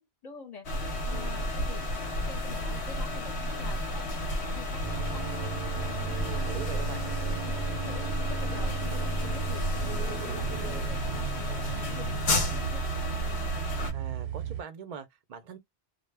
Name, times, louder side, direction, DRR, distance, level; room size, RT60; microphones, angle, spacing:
voice 1, 0.0-1.8 2.3-5.3 5.8-6.2 7.4-13.6, left 4 dB, 45° left, 0.7 m, -47 dB
sound 1, 0.6-13.9, left 1 dB, 85° left, 1.0 m, -32 dB
voice 2, 1.1-1.5 6.3-7.0 13.9-15.6, right 7 dB, 55° right, 0.5 m, -42 dB
sound 2, 4.8-14.6, right 7 dB, 85° right, 0.9 m, -35 dB
2.1 x 2.1 x 3.2 m
omnidirectional pair, 1.1 m